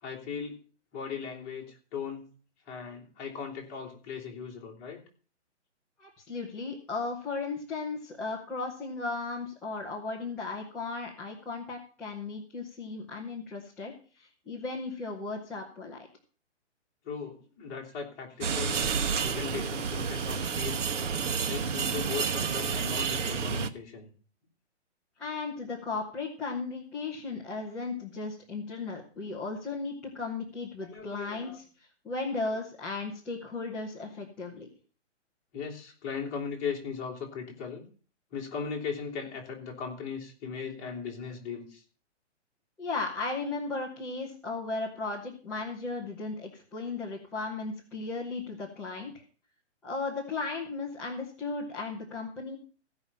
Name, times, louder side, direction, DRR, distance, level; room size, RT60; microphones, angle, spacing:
voice 1, 0.0-0.6 0.9-2.3 2.7-5.0 17.0-18.9 19.2-20.9 21.4-24.1 30.8-31.6 35.5-37.8 38.3-41.8, left 6 dB, 20° left, -2 dB, 2.9 m, -38 dB
voice 2, 6.0-16.1 25.2-31.6 32.0-34.7 42.8-49.1 49.8-52.6, left 3 dB, 5° left, -8 dB, 0.5 m, -36 dB
sound 1, 18.4-23.7, right 6 dB, 85° right, 1.3 m, -30 dB
15.5 x 5.6 x 7.2 m, 0.40 s
hypercardioid pair, 165°, 36 cm